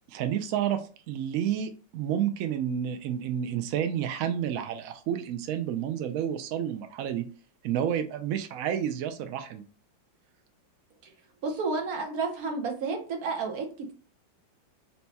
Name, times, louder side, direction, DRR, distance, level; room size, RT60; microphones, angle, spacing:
voice 1, 0.1-7.3 7.6-9.6, right 9 dB, 90° right, 7 dB, 0.7 m, -30 dB
voice 2, 11.4-13.9, right 4 dB, 60° right, 3 dB, 1.3 m, -31 dB
4.2 x 2.3 x 4.1 m, 0.38 s
omnidirectional pair, 2.0 m